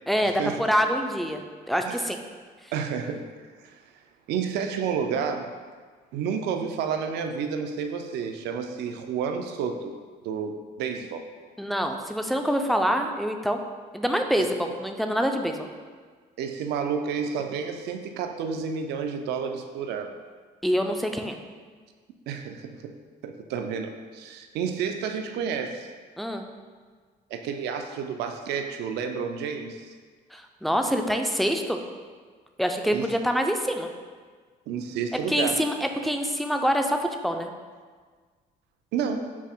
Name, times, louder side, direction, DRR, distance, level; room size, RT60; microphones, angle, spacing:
voice 1, 0.1-2.2 11.6-13.6 13.9-15.7 20.6-21.4 26.2-26.5 30.3-31.8 32.6-33.9 35.3-37.0 37.2-37.5, equal, ahead, 4 dB, 0.3 m, -25 dB
voice 2, 2.7-3.2 3.6-3.7 4.3-5.5 6.1-9.9 10.2-10.5 10.8-11.2 14.4-14.5 16.4-20.1 22.3-22.9 23.2-25.9 27.3-29.9 32.9-33.1 34.7-35.6 38.9-39.3, right 6 dB, 80° right, 6 dB, 0.4 m, -30 dB
5.8 x 2.0 x 4.3 m, 1.5 s
cardioid pair, 110°, 17 cm